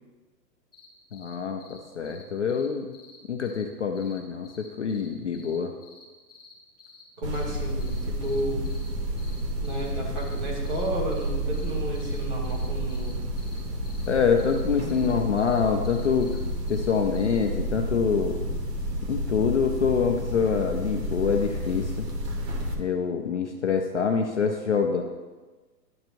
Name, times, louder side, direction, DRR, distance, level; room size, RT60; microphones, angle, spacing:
sound 1, 0.7-0.9 1.1-1.3 1.6-1.8 2.0-2.2 2.5-2.7 2.9-3.6 3.9-4.2 4.4-5.1 5.3-6.5 6.8-7.0 7.3-7.6 7.8-8.9 9.2-9.9 10.2-10.4 10.6-12.2 12.4-14.1 14.4-14.6 14.9-15.1 15.4-16.4 16.7-17.4, left 5 dB, 25° left, 1.3 m, -51 dB
voice 1, 1.1-3.0 3.3-5.7 14.1-16.3 16.7-18.4 19.1-22.1 22.8-25.0, left 6 dB, 50° left, 4 dB, 0.5 m, -25 dB
voice 2, 7.2-8.7 9.6-13.2 23.3-23.4, equal, 30° right, -1 dB, 1.5 m, -32 dB
sound 2, 7.2-22.7, right 1 dB, 75° right, 1.6 m, -30 dB
11.5 x 4.5 x 2.6 m, 1.3 s
hypercardioid pair, 170°, 49 cm